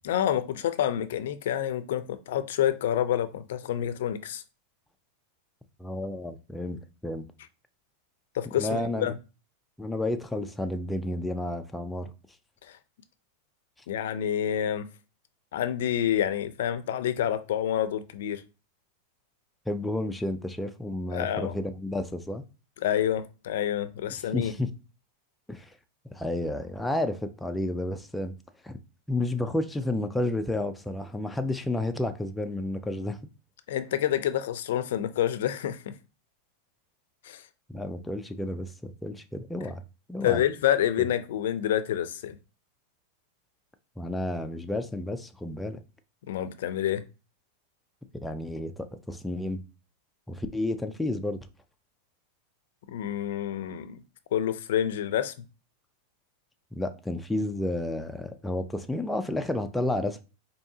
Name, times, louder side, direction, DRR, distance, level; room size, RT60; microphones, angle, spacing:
voice 1, 0.0-4.4 8.3-9.2 12.6-12.8 13.9-14.9 15.5-18.4 21.1-21.5 22.8-24.5 33.7-35.8 37.2-37.4 40.2-42.4 46.3-47.0 52.9-54.0 54.3-55.3, left 10 dB, 75° left, 0.4 m, -28 dB
voice 2, 5.8-7.2 8.5-9.1 9.8-12.1 19.7-22.4 24.3-24.7 25.5-25.7 26.1-28.3 28.6-28.8 29.1-33.2 37.7-39.8 40.1-40.4 44.0-45.8 48.2-49.6 50.3-51.4 56.7-60.2, left 1 dB, 5° left, 0.3 m, -31 dB
4.6 x 2.7 x 2.7 m
supercardioid pair, 150°, 0 cm